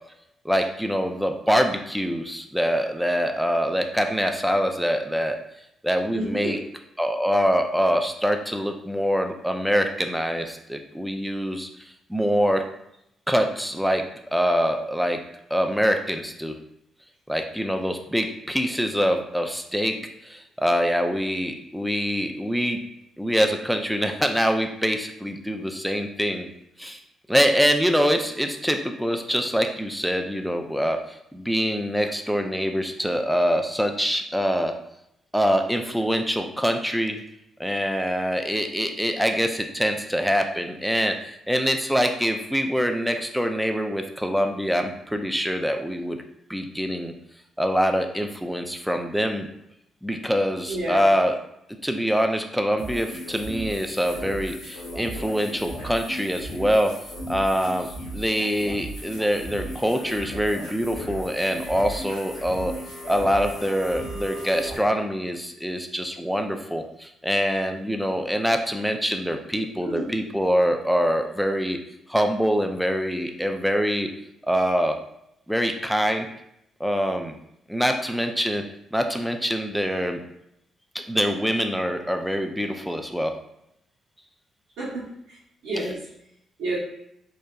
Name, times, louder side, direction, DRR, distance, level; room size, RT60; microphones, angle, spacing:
voice 1, 0.4-5.4 5.8-6.6 7.0-11.7 12.1-12.6 13.3-14.0 14.3-15.2 15.5-16.6 17.3-20.0 20.2-22.8 23.2-26.5 26.8-27.0 27.3-34.7 35.3-37.2 37.6-46.2 46.5-47.1 47.6-49.5 50.0-51.3 51.8-56.9 57.3-62.7 63.1-71.8 72.1-74.1 74.4-74.9 75.5-76.3 76.8-77.3 77.7-78.6 78.9-80.2 80.9-83.3, equal, ahead, 5 dB, 0.4 m, -24 dB
voice 2, 6.1-6.6 50.7-51.0 69.8-70.1 84.8-85.4 85.6-86.0 86.6-86.8, right 2 dB, 75° right, -6 dB, 0.8 m, -30 dB
sound 1, 52.8-64.8, right 1 dB, 80° left, 0.6 m, -36 dB
2.8 x 2.1 x 2.3 m, 0.79 s
hypercardioid pair, 50°, 0 cm